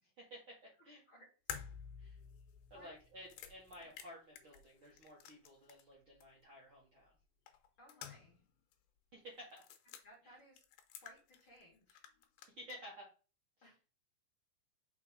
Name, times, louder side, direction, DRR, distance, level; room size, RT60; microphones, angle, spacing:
voice 1, 0.2-0.6 0.8-1.0 2.0-2.2 2.7-7.1 9.1-9.6 10.2-10.3 12.5-13.1 13.6-13.7, equal, 50° right, -4 dB, 1.6 m, -54 dB
sound 1, 1.5-5.9 6.2-6.3 7.5-8.5 8.7-8.8 9.5-10.0 10.6-11.6 11.9-12.8, left 9 dB, 85° left, 2.7 m, -51 dB
voice 2, 7.8-8.4 10.0-10.6 11.0-12.0 13.6-13.8, equal, 40° left, -3 dB, 2.2 m, -61 dB
5.7 x 4.5 x 3.7 m, 0.35 s
omnidirectional pair, 4.5 m